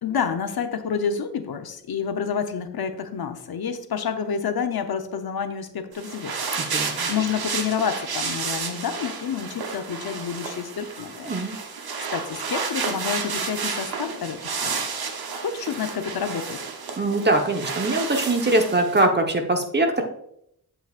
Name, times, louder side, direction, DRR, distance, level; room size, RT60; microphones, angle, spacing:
voice 1, 0.0-6.3 7.1-11.3 12.1-14.8 15.4-16.6, left 7 dB, 85° left, 8 dB, 0.8 m, -29 dB
sound 1, 5.9-19.1, right 5 dB, 80° right, 0.9 m, -31 dB
voice 2, 6.7-7.1 11.2-11.6 17.0-20.0, right 2 dB, 30° right, 3 dB, 1.1 m, -22 dB
8.1 x 7.5 x 2.5 m, 0.74 s
wide cardioid pair, 85°, 36 cm